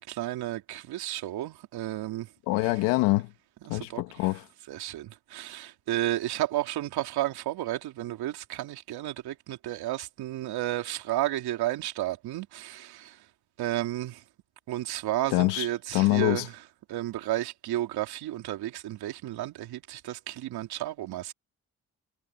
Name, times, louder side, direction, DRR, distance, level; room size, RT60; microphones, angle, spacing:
voice 1, 0.0-2.3 3.7-4.0 4.7-13.2 13.6-14.2 14.7-16.5 16.9-21.3, right 14 dB, 75° right, 3.5 m, -32 dB
voice 2, 2.5-3.3 3.7-4.4 15.3-15.7 15.9-16.5, left 21 dB, 90° left, 2.3 m, -25 dB
hypercardioid pair, 50°, 38 cm